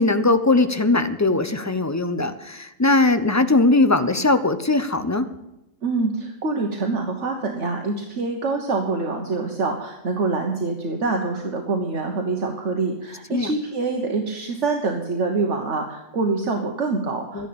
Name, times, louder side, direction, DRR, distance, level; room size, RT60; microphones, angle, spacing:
voice 1, 0.0-5.3 13.3-13.5 17.3-17.5, left 2 dB, 15° left, 10 dB, 0.6 m, -20 dB
voice 2, 5.8-17.5, right 3 dB, 65° right, 2 dB, 1.6 m, -25 dB
12.5 x 11.0 x 8.6 m, 0.90 s
omnidirectional pair, 1.3 m